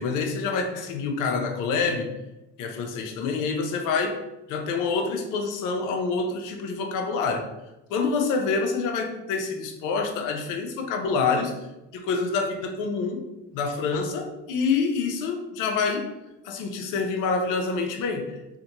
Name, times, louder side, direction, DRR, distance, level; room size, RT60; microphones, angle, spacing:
voice 1, 0.0-2.1 2.6-4.2 4.5-7.5 7.9-11.6 11.9-13.2 13.5-16.1 16.4-18.4, left 4 dB, 60° left, 5 dB, 0.6 m, -27 dB
2.7 x 2.5 x 2.6 m, 0.95 s
hypercardioid pair, 70°, 36 cm